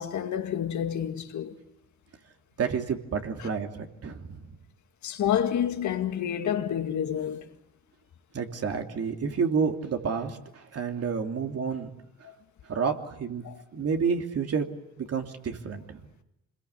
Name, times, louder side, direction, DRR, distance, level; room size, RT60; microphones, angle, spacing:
voice 1, 0.0-1.6 3.4-3.5 5.0-7.5 12.2-12.3 13.4-13.6, left 9 dB, 70° left, 2.1 m, -29 dB
voice 2, 2.6-4.5 8.3-11.9 12.7-13.4 13.7-14.6 15.0-16.0, right 6 dB, 55° right, 3.0 m, -29 dB
26.5 x 21.5 x 8.4 m
cardioid pair, 90°, 30 cm